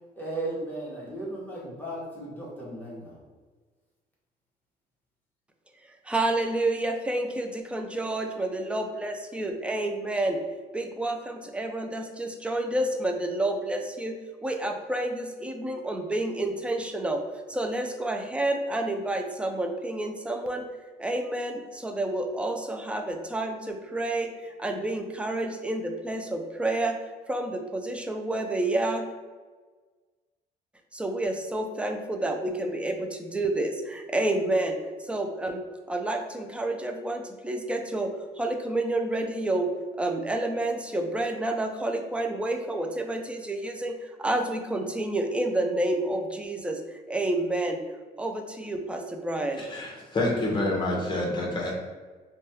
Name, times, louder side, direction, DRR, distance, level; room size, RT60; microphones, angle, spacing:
voice 1, 0.1-3.2, right 1 dB, 10° left, -6 dB, 1.1 m, -35 dB
voice 2, 6.1-10.4 10.7-17.2 17.5-20.7 21.0-27.0 27.3-29.1 30.9-38.1 38.4-39.7 39.9-46.8 47.1-47.8 48.2-49.6, right 1 dB, 5° right, 4 dB, 0.3 m, -29 dB
voice 3, 49.6-51.7, left 1 dB, 25° left, -2 dB, 0.9 m, -28 dB
3.1 x 2.2 x 2.8 m, 1.4 s
cardioid pair, 110°, 17 cm